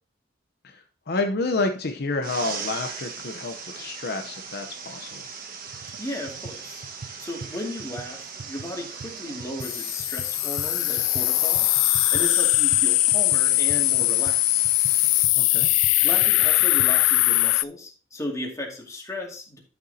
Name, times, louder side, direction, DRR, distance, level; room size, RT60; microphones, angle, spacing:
voice 1, 0.6-5.3 15.3-15.7, left 3 dB, 55° left, 4 dB, 0.8 m, -29 dB
sound 1, 2.2-15.2, right 5 dB, 50° right, 1.4 m, -39 dB
sound 2, 5.1-5.2 5.7-6.0 6.3-11.3 11.5-16.9, right 4 dB, 70° right, 0.6 m, -42 dB
voice 2, 6.0-6.8 7.2-11.7 12.1-14.6 16.0-19.6, left 1 dB, 15° left, -1 dB, 2.2 m, -35 dB
sound 3, 9.6-17.6, left 19 dB, 90° left, 0.3 m, -21 dB
11.5 x 6.7 x 2.8 m, 0.38 s
head